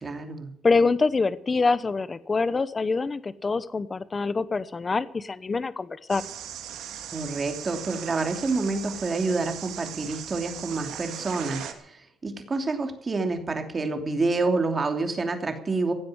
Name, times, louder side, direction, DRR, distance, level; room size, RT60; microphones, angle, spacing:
voice 1, 0.0-0.5 7.1-15.9, right 3 dB, 35° right, 6 dB, 2.8 m, -28 dB
voice 2, 0.6-6.2, left 4 dB, 30° left, 16 dB, 0.9 m, -25 dB
sound 1, 6.1-11.7, right 9 dB, 90° right, 2.1 m, -38 dB
16.5 x 7.8 x 9.8 m, 0.71 s
cardioid pair, 90°, 0 cm